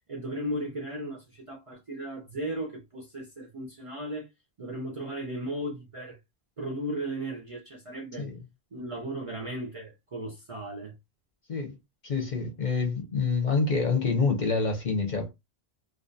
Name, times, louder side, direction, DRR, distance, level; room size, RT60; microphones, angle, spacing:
voice 1, 0.1-4.3 4.6-6.2 6.6-8.3 8.7-10.9, right 1 dB, 45° right, 0.4 m, -36 dB
voice 2, 12.0-15.3, left 4 dB, 50° left, 0.6 m, -27 dB
2.5 x 2.1 x 2.5 m
omnidirectional pair, 1.1 m